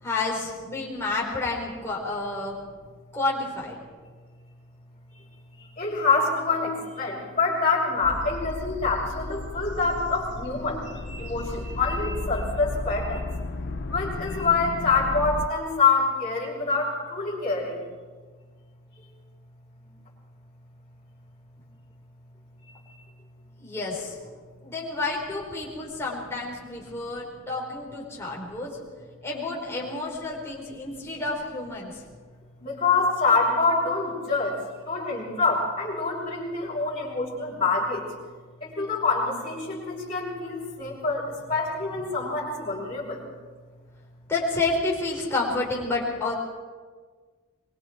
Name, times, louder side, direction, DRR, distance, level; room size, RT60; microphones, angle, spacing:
voice 1, 0.0-2.6 3.1-3.8 23.6-24.2 24.6-28.7 29.2-32.0 44.3-46.3, left 3 dB, 10° left, -4 dB, 5.0 m, -30 dB
voice 2, 5.8-10.8 11.1-13.2 13.9-17.8 32.6-34.6 34.9-38.0 38.6-43.2, left 4 dB, 30° left, -8 dB, 6.1 m, -26 dB
sound 1, 8.0-15.5, left 2 dB, 55° left, 0.9 m, -34 dB
24.5 x 23.0 x 4.7 m, 1.5 s
head